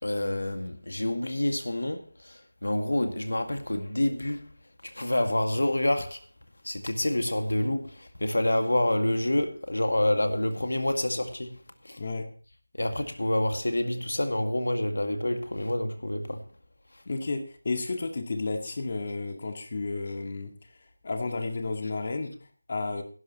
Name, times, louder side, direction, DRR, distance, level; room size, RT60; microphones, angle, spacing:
voice 1, 0.0-4.5 4.8-6.2 6.6-11.6 11.8-12.0 12.7-16.4, left 1 dB, 75° left, 2.0 m, -28 dB
voice 2, 17.1-20.5 21.0-23.0, left 3 dB, 40° left, 2.0 m, -32 dB
17.0 x 11.5 x 3.0 m
figure-of-eight pair, 165°, 0 cm